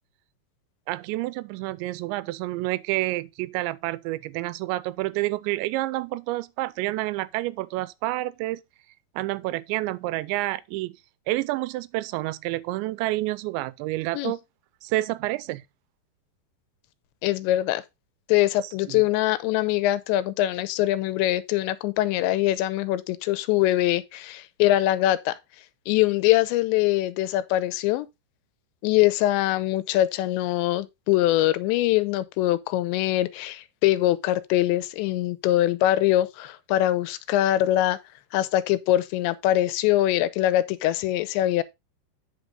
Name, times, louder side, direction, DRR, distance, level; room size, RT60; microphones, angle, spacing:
voice 1, 0.9-8.6 9.2-11.0 11.3-14.4 14.8-15.6 18.6-19.0, right 18 dB, 85° right, 2.9 m, -29 dB
voice 2, 17.2-17.8 18.3-25.4 25.9-28.1 28.8-38.0 38.3-41.6, left 14 dB, 85° left, 2.9 m, -23 dB
9.3 x 5.9 x 3.8 m
omnidirectional pair, 5.1 m